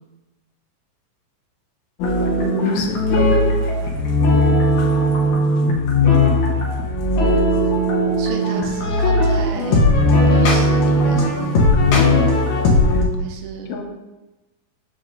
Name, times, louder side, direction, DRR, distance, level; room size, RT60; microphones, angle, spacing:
sound 1, 2.0-13.0, left 1 dB, 70° left, 1.9 m, -17 dB
voice 1, 2.4-3.0 13.7-13.8, left 4 dB, 85° left, 3 dB, 2.4 m, -29 dB
voice 2, 5.2-5.8 8.2-9.8 10.3-11.6 13.2-13.8, right 5 dB, 85° right, 3 dB, 2.5 m, -33 dB
7.0 x 6.1 x 2.7 m, 1.0 s
omnidirectional pair, 4.1 m